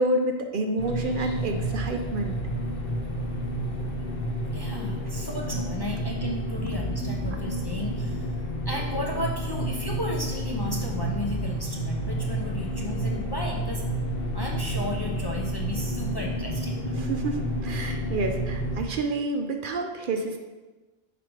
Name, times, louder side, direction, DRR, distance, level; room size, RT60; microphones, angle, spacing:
voice 1, 0.0-2.4 17.0-20.4, right 2 dB, 60° right, 4 dB, 0.7 m, -28 dB
sound 1, 0.8-18.8, right 1 dB, 65° left, 1.0 m, -30 dB
voice 2, 4.5-8.3 8.7-13.8 14.3-17.1, left 1 dB, 30° left, -1 dB, 0.5 m, -34 dB
5.0 x 5.0 x 4.7 m, 1.2 s
omnidirectional pair, 1.1 m